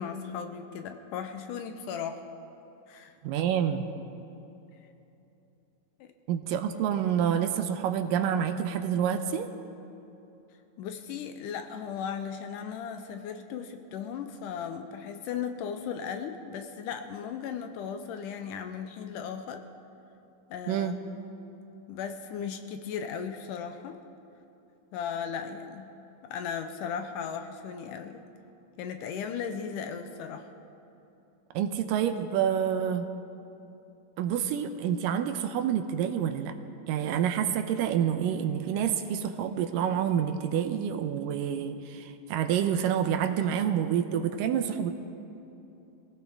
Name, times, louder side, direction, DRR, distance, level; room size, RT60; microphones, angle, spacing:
voice 1, 0.0-2.2 2.9-3.2 6.0-6.1 10.8-19.7 20.5-21.3 21.9-24.0 24.9-25.9 26.2-28.2 28.8-30.5, left 7 dB, 80° left, 7 dB, 2.1 m, -36 dB
voice 2, 3.2-3.9 6.3-9.5 20.7-21.0 31.5-33.1 34.2-36.5 36.9-44.9, right 9 dB, 80° right, 8 dB, 2.3 m, -28 dB
22.5 x 16.5 x 3.5 m, 2.9 s
omnidirectional pair, 4.0 m